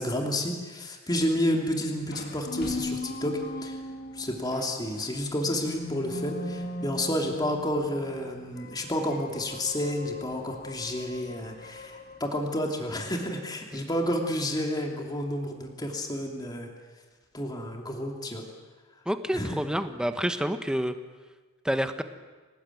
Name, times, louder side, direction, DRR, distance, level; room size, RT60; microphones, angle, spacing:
voice 1, 0.0-3.8 4.1-16.7 17.3-18.4 19.3-19.6, left 1 dB, 20° left, 1 dB, 2.9 m, -30 dB
sound 1, 1.9-12.2, left 1 dB, 45° left, 1.8 m, -39 dB
voice 2, 19.0-20.9 21.6-22.0, equal, 5° right, 8 dB, 1.2 m, -28 dB
26.0 x 19.5 x 9.3 m, 1.4 s
head